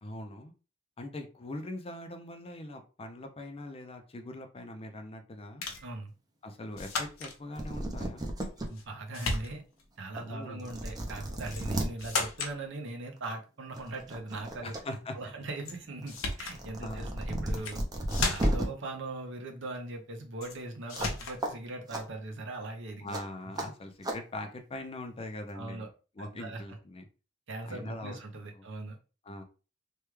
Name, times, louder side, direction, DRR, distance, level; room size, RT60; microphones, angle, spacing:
voice 1, 0.0-0.5 1.0-5.6 6.4-8.3 10.1-10.7 14.6-15.2 16.8-17.1 23.0-25.8 26.2-27.1 27.7-28.2 28.5-28.6 29.2-29.4, left 1 dB, 30° left, 6 dB, 0.5 m, -42 dB
sound 1, 5.6-5.9 6.8-7.4 8.4-8.9 9.1-9.8 11.5-11.7 12.0-12.6 15.6-15.8 16.1-16.6 17.5-17.8 18.1-18.7 20.4-20.6 20.9-21.4, left 3 dB, 90° left, 0.7 m, -35 dB
voice 2, 5.8-6.1 8.7-9.6 10.0-14.7 15.1-17.8 18.1-23.2 25.5-25.9 26.3-26.6 27.5-29.0, right 2 dB, 65° right, 3 dB, 0.8 m, -40 dB
sound 2, 7.3-7.4 7.6-8.7 9.2-9.3 10.2-10.3 10.6-11.9 13.2-13.4 13.8-14.8 15.2-18.7 20.9-21.1 21.4-21.5 21.9-22.0 23.1-23.2 23.6-23.7 24.0-24.2, right 1 dB, 20° right, 0.6 m, -33 dB
3.3 x 2.3 x 3.1 m, 0.33 s
head